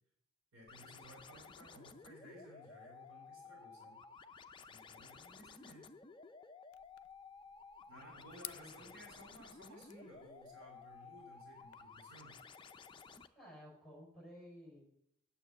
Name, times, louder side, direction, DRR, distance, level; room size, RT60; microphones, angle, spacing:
voice 1, 0.5-4.0 4.7-5.9 7.9-12.4, equal, 60° right, -1 dB, 3.6 m, -57 dB
sound 1, 0.7-13.3, left 5 dB, 20° left, 0.4 m, -55 dB
sound 2, 6.7-11.7, left 16 dB, 75° left, 0.4 m, -57 dB
voice 2, 8.5-9.0 13.3-14.8, equal, ahead, -3 dB, 5.7 m, -55 dB
8.9 x 6.8 x 8.0 m, 0.75 s
head